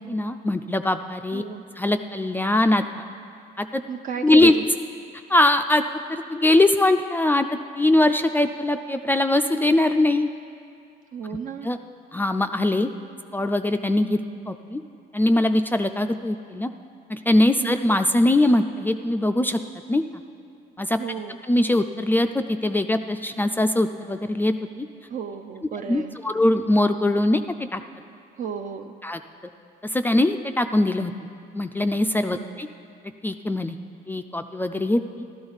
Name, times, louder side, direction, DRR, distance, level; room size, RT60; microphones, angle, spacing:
voice 1, 0.1-1.4 1.8-3.0 3.6-3.8 4.2-4.5 5.3-5.8 6.1-7.5 7.8-10.3 11.6-11.8 12.1-12.9 13.3-14.2 14.5-14.8 15.1-16.7 17.1-19.6 19.9-20.0 20.8-21.0 21.5-24.9 25.9-27.4 27.7-27.8 29.0-29.2 29.8-31.1 31.5-32.7 33.2-33.8 34.1-35.3, left 1 dB, 10° left, 7 dB, 0.3 m, -21 dB
voice 2, 1.3-1.6 3.9-4.7 11.1-11.7 17.6-17.8 21.0-21.4 25.1-26.2 28.3-29.0 32.3-32.6, right 7 dB, 50° right, 5 dB, 0.5 m, -33 dB
13.5 x 12.5 x 4.0 m, 2.4 s
cardioid pair, 110°, 17 cm